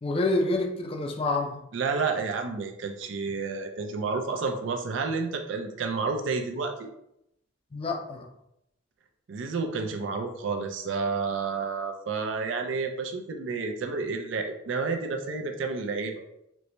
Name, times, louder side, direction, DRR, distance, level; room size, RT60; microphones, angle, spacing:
voice 1, 0.0-1.6 7.7-8.3, left 2 dB, 30° left, 3 dB, 0.4 m, -27 dB
voice 2, 1.7-6.9 9.3-16.2, right 4 dB, 70° right, 4 dB, 0.4 m, -30 dB
4.5 x 2.1 x 2.6 m, 0.80 s
head